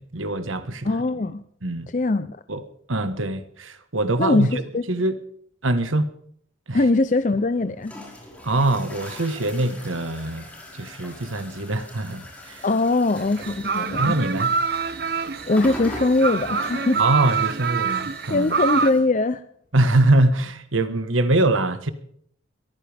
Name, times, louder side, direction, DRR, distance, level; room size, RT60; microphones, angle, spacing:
voice 1, 0.0-0.9 1.6-1.9 2.5-2.6 2.9-4.6 4.9-5.2 5.6-6.1 6.7-6.8 8.4-10.5 10.7-12.6 14.0-14.5 17.0-18.5 19.7-21.9, right 2 dB, 90° right, 1.5 m, -23 dB
voice 2, 0.8-1.4 1.9-2.4 4.2-4.5 4.7-4.8 6.7-8.0 12.6-14.2 15.5-17.0 18.3-19.4, left 2 dB, 40° left, 0.6 m, -21 dB
Toilet flushing, 7.3-19.0, left 1 dB, 5° left, 5.0 m, -41 dB
sound 1, 13.2-18.9, right 5 dB, 50° right, 0.9 m, -26 dB
22.5 x 15.0 x 3.5 m
head